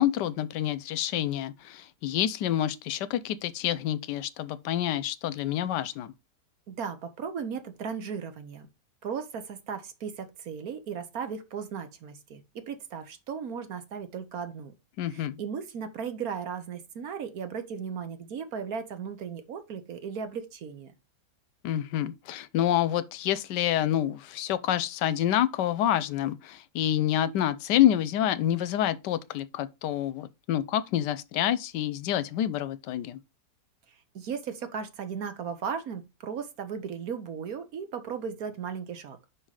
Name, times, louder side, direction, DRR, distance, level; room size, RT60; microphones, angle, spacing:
voice 1, 0.0-6.1 15.0-15.4 21.6-33.2, left 11 dB, 85° left, 1.3 m, -27 dB
voice 2, 6.7-8.7 9.0-14.7 15.1-20.9 33.9-39.2, right 6 dB, 60° right, 1.4 m, -36 dB
5.6 x 5.4 x 4.8 m
omnidirectional pair, 1.8 m